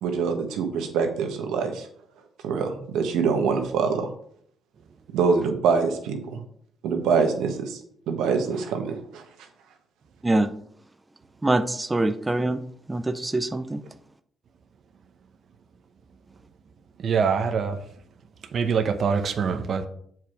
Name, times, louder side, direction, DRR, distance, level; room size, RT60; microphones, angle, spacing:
voice 1, 0.0-1.8 2.4-4.1 5.1-6.4 6.8-7.8 8.1-9.2, right 5 dB, 90° right, 1.3 m, -24 dB
voice 2, 11.4-12.6 12.9-13.8, right 2 dB, 15° right, 0.5 m, -24 dB
voice 3, 17.0-17.8 18.5-19.9, right 6 dB, 55° right, 0.8 m, -24 dB
7.4 x 4.7 x 5.0 m
cardioid pair, 90°, 0 cm